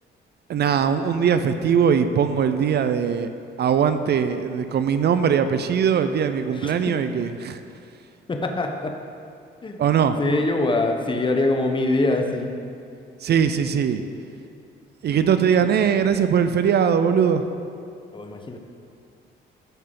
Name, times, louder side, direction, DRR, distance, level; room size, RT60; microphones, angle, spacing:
voice 1, 0.5-3.3 3.6-7.6 9.8-10.2 13.2-14.0 15.0-17.4, right 7 dB, 55° right, 10 dB, 0.5 m, -20 dB
voice 2, 8.3-8.9 9.6-9.8 10.2-12.6 18.1-18.6, left 2 dB, 25° left, 4 dB, 1.0 m, -23 dB
14.5 x 5.8 x 3.9 m, 2.4 s
cardioid pair, 90°, 20 cm